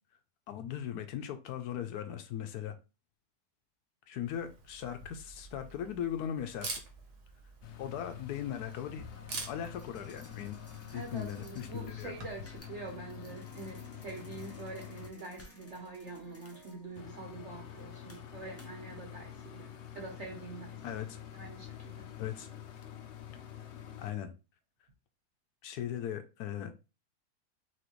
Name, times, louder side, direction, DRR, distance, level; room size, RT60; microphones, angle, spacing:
voice 1, 0.5-2.8 4.1-6.8 7.8-9.0 9.3-10.6 10.9-12.1 20.8-21.2 22.2-22.5 24.0-24.3 25.6-26.7, left 10 dB, 85° left, 1.1 m, -38 dB
Camera, 4.3-12.6, right 3 dB, 85° right, 1.7 m, -47 dB
sound 1, 7.3-7.4 8.1-19.0, left 1 dB, 15° left, 0.5 m, -56 dB
sound 2, 7.6-15.1 17.0-24.1, left 10 dB, 65° left, 0.7 m, -47 dB
voice 2, 10.9-20.8 21.3-22.1, right 3 dB, 55° right, 1.1 m, -45 dB
5.9 x 2.8 x 3.0 m
omnidirectional pair, 1.6 m